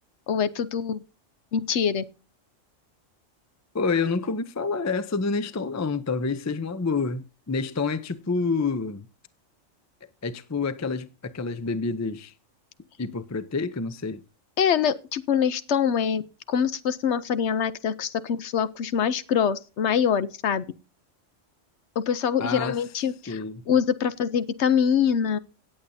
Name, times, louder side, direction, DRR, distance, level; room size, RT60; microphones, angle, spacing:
voice 1, 0.3-1.0 1.5-2.0 14.6-20.7 22.0-25.4, left 7 dB, 65° left, 0.9 m, -24 dB
voice 2, 3.7-9.1 10.2-12.3 13.0-14.2 22.4-22.8 23.3-23.6, left 4 dB, 25° left, 0.4 m, -28 dB
17.5 x 8.3 x 2.7 m
omnidirectional pair, 1.3 m